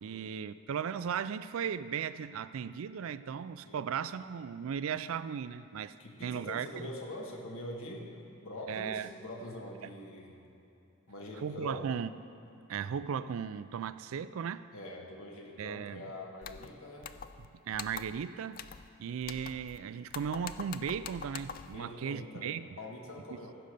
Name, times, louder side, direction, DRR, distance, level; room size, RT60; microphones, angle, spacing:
voice 1, 0.0-5.9 6.2-6.7 8.7-9.1 11.4-12.1 12.7-14.7 15.6-16.1 17.4-18.6 19.0-22.7, right 7 dB, 75° right, 14 dB, 0.3 m, -36 dB
voice 2, 6.0-10.4 11.1-11.9 14.7-17.1 21.6-23.6, left 1 dB, 75° left, 0 dB, 1.7 m, -44 dB
sound 1, 16.4-16.7 17.0-17.5 17.7-18.2 18.5-18.9 19.2-19.8 20.1-21.8, left 7 dB, 40° left, 0.3 m, -44 dB
15.5 x 5.2 x 6.7 m, 3.0 s
head